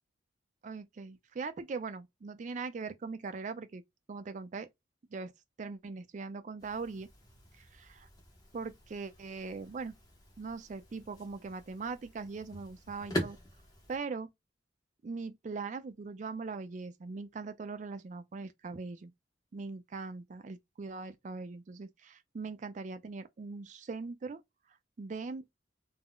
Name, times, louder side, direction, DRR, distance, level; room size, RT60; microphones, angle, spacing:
voice 1, 0.6-3.8 4.1-4.7 5.1-5.3 5.6-7.1 7.6-8.1 8.5-9.9 10.4-13.4 13.9-14.3 15.0-19.1 19.5-24.4 25.0-25.4, right 4 dB, 40° right, 0.3 m, -41 dB
sound 1, 6.6-14.0, equal, 20° left, 0.7 m, -43 dB
2.3 x 2.0 x 3.6 m
head